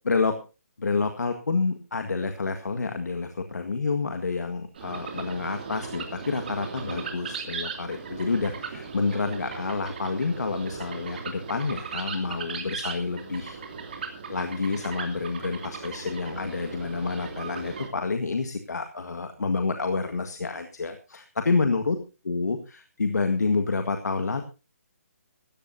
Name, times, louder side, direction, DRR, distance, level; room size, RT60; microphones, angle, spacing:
voice 1, 0.8-13.6 14.3-22.0 22.2-24.4, left 4 dB, 90° left, 6 dB, 1.8 m, -28 dB
sound 1, 4.8-17.9, right 5 dB, 35° right, 2.6 m, -38 dB
18.0 x 14.5 x 2.8 m, 0.31 s
hypercardioid pair, 175°, 9 cm